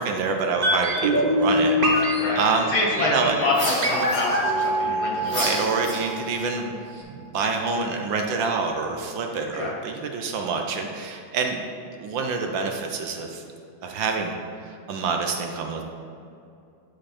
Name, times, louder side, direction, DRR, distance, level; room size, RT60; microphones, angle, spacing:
voice 1, 0.0-3.4 5.2-13.4 13.8-14.4 14.6-15.8, right 4 dB, 70° right, 3 dB, 1.3 m, -27 dB
sound 1, 0.6-6.7 6.9-7.0, equal, 40° right, 0.8 m, -24 dB
voice 2, 2.7-5.5 9.5-9.7, left 2 dB, 75° left, -3 dB, 2.5 m, -26 dB
sound 2, 3.5-4.7 5.3-6.4, left 1 dB, 20° left, 1.4 m, -31 dB
10.5 x 5.1 x 4.2 m, 2.5 s
omnidirectional pair, 2.3 m